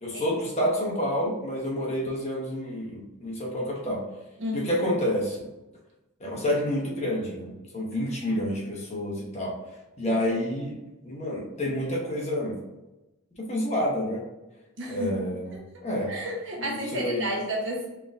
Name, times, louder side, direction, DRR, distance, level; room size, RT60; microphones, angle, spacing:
voice 1, 0.0-4.0 4.5-5.5 6.2-9.5 10.0-10.7 11.0-12.6 13.4-14.2 14.9-15.5 15.8-16.1 16.6-17.2, left 1 dB, 30° left, -3 dB, 1.0 m, -29 dB
voice 2, 4.4-4.8 8.2-8.4 14.8-15.2 15.5-15.6 16.1-17.9, equal, 55° right, -2 dB, 1.1 m, -32 dB
4.6 x 3.7 x 2.6 m, 1.0 s
head